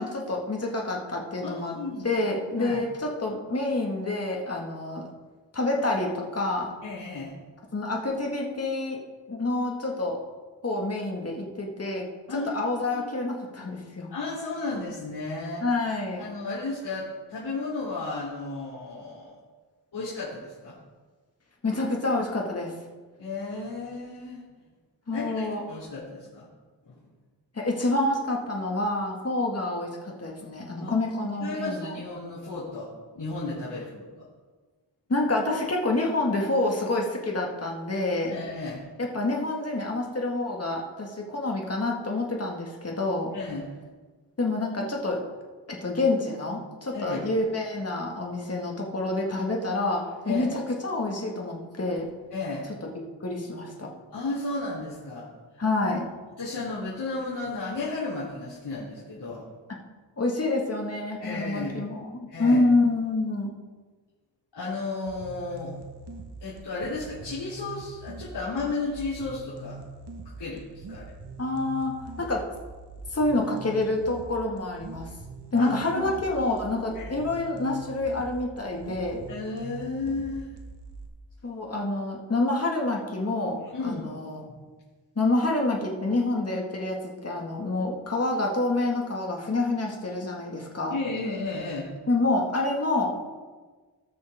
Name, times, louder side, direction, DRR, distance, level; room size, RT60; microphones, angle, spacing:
voice 1, 0.0-1.8 2.0-5.1 5.5-6.7 7.7-9.0 9.3-10.2 10.6-14.1 15.6-16.2 21.6-22.7 25.1-25.6 27.5-32.0 35.1-38.4 39.0-43.3 44.4-45.2 45.7-52.1 52.8-52.9 53.2-53.9 55.6-56.1 60.2-63.5 71.4-71.9 72.2-72.4 73.1-75.1 75.5-79.2 81.4-84.4 85.2-91.0 92.1-93.1, left 2 dB, 35° left, 0 dB, 1.9 m, -27 dB
voice 2, 1.4-2.1 2.6-2.8 6.8-7.4 12.3-12.5 12.9-13.1 14.1-15.6 16.2-19.4 19.9-20.7 23.2-24.4 25.1-26.5 26.8-26.9 30.8-30.9 31.4-34.3 38.3-38.8 43.3-43.7 46.9-47.2 50.3-50.5 52.3-52.7 54.1-55.3 56.4-59.4 61.2-61.7 62.3-62.6 64.5-65.7 66.4-69.8 70.4-71.0 75.5-76.0 76.9-77.1 79.3-80.5 83.7-84.1 90.9-91.9, left 3 dB, 60° left, -10 dB, 3.3 m, -33 dB
sound 1, 65.1-81.1, right 3 dB, 60° right, 1.4 m, -43 dB
19.0 x 6.3 x 3.6 m, 1.4 s
wide cardioid pair, 120°, 44 cm